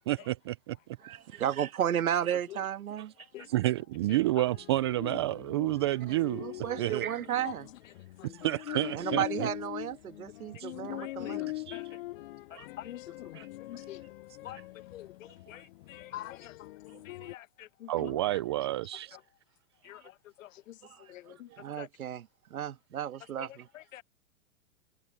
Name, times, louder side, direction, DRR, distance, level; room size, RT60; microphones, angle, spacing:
voice 1, 0.1-0.8 3.5-7.1 8.2-9.5 10.6-10.7 11.5-12.0 12.5-12.7 13.3-13.5 17.9-19.2, right 16 dB, 20° right, 0.3 m, -30 dB
voice 2, 1.0-3.1 6.4-7.7 8.7-11.5 14.4-14.6 16.9-17.3 20.0-20.1 20.8-21.0 21.5-23.7, right 10 dB, 75° right, 1.8 m, -34 dB
sound 1, 4.4-17.4, left 18 dB, 40° left, 0.5 m, -42 dB
voice 3, 10.9-11.8 12.8-14.0 14.4-14.6 14.9-16.5 17.1-18.4 19.1-19.2 19.8-20.0 20.4-20.8 21.1-21.5 21.8-21.9 23.4-24.0, left 13 dB, 65° left, 1.1 m, -46 dB
hypercardioid pair, 125°, 43 cm